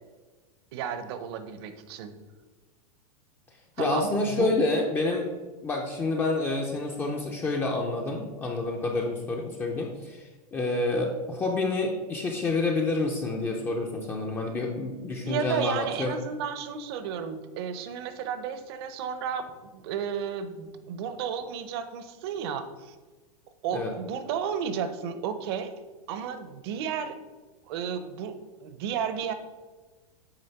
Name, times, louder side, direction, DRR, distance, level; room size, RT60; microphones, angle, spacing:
voice 1, 0.7-2.1 3.8-4.5 15.3-22.9 23.6-25.7 26.1-27.1 27.7-29.3, right 7 dB, 40° right, 10 dB, 0.7 m, -33 dB
voice 2, 3.8-5.2 5.6-16.1 23.7-23.9, left 2 dB, 10° left, 1 dB, 0.5 m, -28 dB
8.8 x 3.5 x 5.8 m, 1.3 s
supercardioid pair, 170°, 19 cm